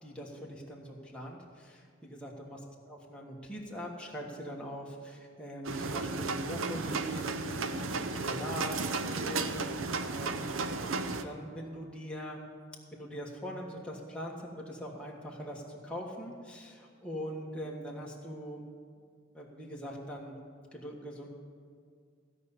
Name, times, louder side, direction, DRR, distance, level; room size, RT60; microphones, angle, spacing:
voice 1, 0.0-2.6 2.9-7.3 7.5-8.8 9.1-12.5 12.9-18.7 19.3-20.4 20.7-21.3, equal, 5° left, -3 dB, 1.5 m, -42 dB
sound 1, 5.6-11.2, right 3 dB, 90° right, 0.7 m, -34 dB
16.0 x 5.6 x 8.4 m, 2.1 s
head